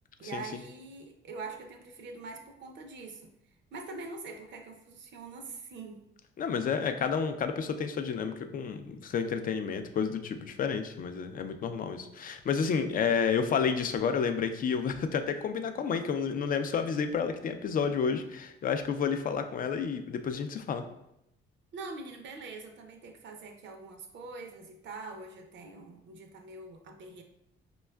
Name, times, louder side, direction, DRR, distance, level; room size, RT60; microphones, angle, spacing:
voice 1, 0.2-3.3 3.7-6.0 21.7-27.2, right 3 dB, 65° right, 4 dB, 0.6 m, -44 dB
voice 2, 6.4-20.8, left 6 dB, 45° left, 8 dB, 0.4 m, -30 dB
5.1 x 2.3 x 2.2 m, 0.82 s
cardioid pair, 90°, 20 cm